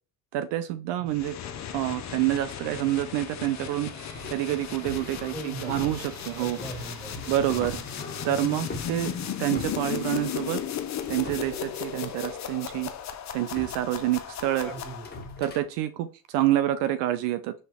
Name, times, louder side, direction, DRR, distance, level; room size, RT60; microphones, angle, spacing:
voice 1, 0.3-1.3 1.7-3.9 4.3-5.3 5.6-6.6 7.3-7.8 8.2-9.1 9.4-10.6 11.1-12.9 13.3-14.7 15.4-17.5, right 13 dB, 70° right, 11 dB, 0.6 m, -27 dB
sound 1, 1.1-15.4, left 9 dB, 40° left, 0.6 m, -36 dB
sound 2, 1.4-12.2, right 7 dB, 85° right, 1.3 m, -53 dB
sound 3, 4.1-10.6 10.9-12.3 12.7-12.9 13.5-15.6, left 2 dB, 20° left, 1.5 m, -42 dB
voice 2, 5.3-6.0 6.4-7.6 14.6-15.2, right 1 dB, 5° left, 2 dB, 2.0 m, -40 dB
4.2 x 3.4 x 3.3 m, 0.35 s
hypercardioid pair, 65°, 45 cm